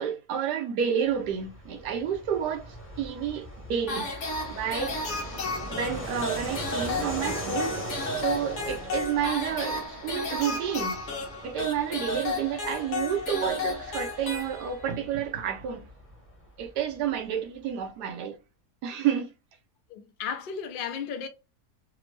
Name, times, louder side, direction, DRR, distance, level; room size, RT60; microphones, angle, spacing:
voice 1, 0.0-4.1 4.5-5.0 5.7-7.8 8.2-11.0 11.4-15.9 16.6-18.4 18.8-19.3, right 8 dB, 85° right, 1.3 m, -30 dB
Fixed-wing aircraft airplane, 1.1-17.2, right 1 dB, 10° left, 0.6 m, -41 dB
sound 1, 3.9-15.0, left 2 dB, 55° left, 1.0 m, -33 dB
voice 2, 19.9-21.3, left 7 dB, 90° left, 0.4 m, -34 dB
3.4 x 2.0 x 3.2 m
omnidirectional pair, 1.7 m